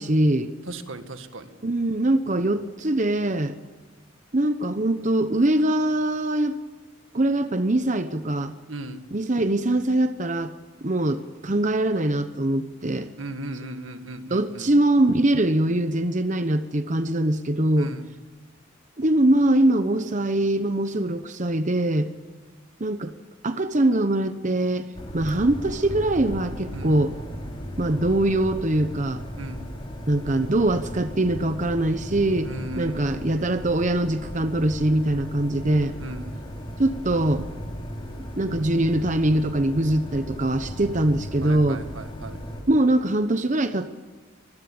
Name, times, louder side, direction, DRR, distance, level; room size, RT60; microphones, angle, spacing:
voice 1, 0.0-0.5 1.6-3.6 4.3-6.6 7.1-8.5 9.1-10.5 10.8-13.1 14.3-17.9 19.0-22.1 22.8-23.1 23.4-27.1 27.8-29.2 30.1-32.5 32.8-35.9 36.8-37.5 38.4-41.8 42.7-43.9, right 1 dB, 40° right, 10 dB, 1.0 m, -22 dB
voice 2, 0.7-1.5 8.7-9.0 13.2-14.7 17.8-18.1 26.7-27.0 29.4-29.7 32.4-33.5 36.0-36.4 41.4-42.4, right 1 dB, 85° right, 8 dB, 1.9 m, -37 dB
sound 1, 24.9-42.6, equal, 25° left, 3.9 m, -36 dB
24.0 x 20.5 x 8.7 m, 1.3 s
head